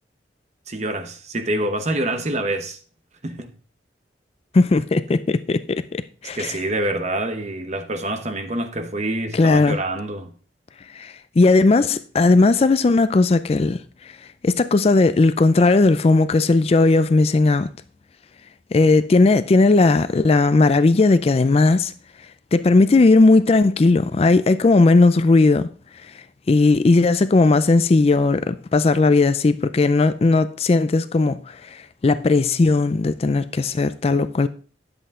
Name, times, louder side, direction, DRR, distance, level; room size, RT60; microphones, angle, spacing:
voice 1, 0.7-2.8 3.2-3.5 6.3-10.3, right 1 dB, 40° right, 1.0 m, -26 dB
voice 2, 4.5-6.6 9.3-9.8 10.9-13.8 14.4-17.7 18.7-21.9 22.5-25.7 26.5-34.5, left 3 dB, 35° left, 0.4 m, -17 dB
10.0 x 7.9 x 3.7 m
head